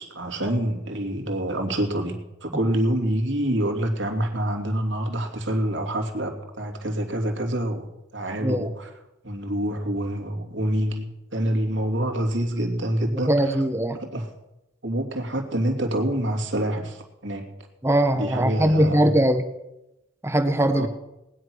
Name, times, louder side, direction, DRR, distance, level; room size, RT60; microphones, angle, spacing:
voice 1, 0.0-7.9 8.1-8.9 9.2-13.6 14.0-14.3 14.8-17.5 18.1-19.2 20.7-20.9, right 1 dB, 65° right, 4 dB, 2.8 m, -26 dB
voice 2, 13.1-14.0 17.8-19.5 20.2-20.9, right 1 dB, 15° right, 8 dB, 1.1 m, -21 dB
19.5 x 10.5 x 6.3 m, 0.91 s
head